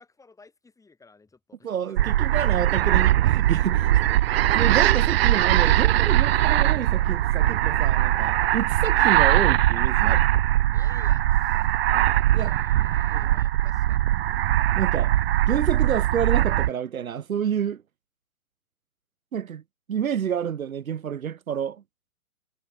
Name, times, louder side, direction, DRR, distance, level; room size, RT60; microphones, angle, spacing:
voice 1, 0.0-2.5 10.7-14.1, left 4 dB, 5° left, 5.7 m, -53 dB
voice 2, 1.6-10.3 12.3-12.5 13.1-13.3 14.7-15.1 15.5-17.8 19.3-19.6 19.9-21.8, right 8 dB, 70° right, 1.6 m, -29 dB
sound 1, 2.0-16.7, right 13 dB, 45° right, 0.6 m, -21 dB
hypercardioid pair, 125°, 42 cm